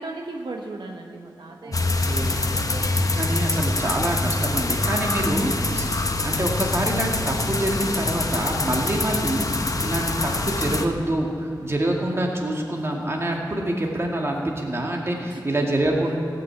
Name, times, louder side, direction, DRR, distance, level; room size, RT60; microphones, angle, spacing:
voice 1, 0.0-3.1 15.1-15.7, right 2 dB, 80° right, 1 dB, 1.0 m, -38 dB
sound 1, 1.7-10.8, left 2 dB, 45° left, 0.8 m, -25 dB
voice 2, 2.0-2.5 3.1-5.9 6.2-16.2, right 1 dB, 35° right, 0 dB, 2.0 m, -26 dB
16.5 x 6.1 x 8.0 m, 2.7 s
wide cardioid pair, 90°, 8 cm